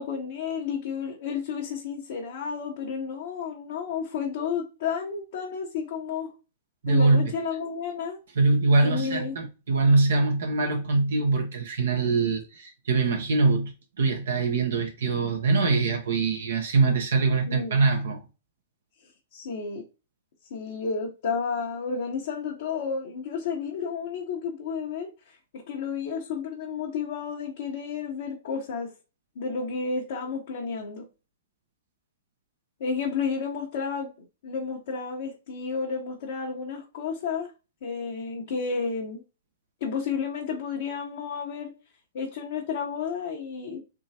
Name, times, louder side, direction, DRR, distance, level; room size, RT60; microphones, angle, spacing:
voice 1, 0.0-6.3 6.9-8.2 8.8-9.4 17.5-17.8 19.3-19.8 20.5-28.9 29.4-31.1 32.8-34.1 34.4-37.5 37.8-39.2 39.8-41.7 42.1-43.8, left 5 dB, 60° left, 0.9 m, -31 dB
voice 2, 6.8-7.3 8.3-18.2, right 3 dB, 70° right, 1.0 m, -23 dB
3.6 x 3.1 x 2.8 m
hypercardioid pair, 115°, 0 cm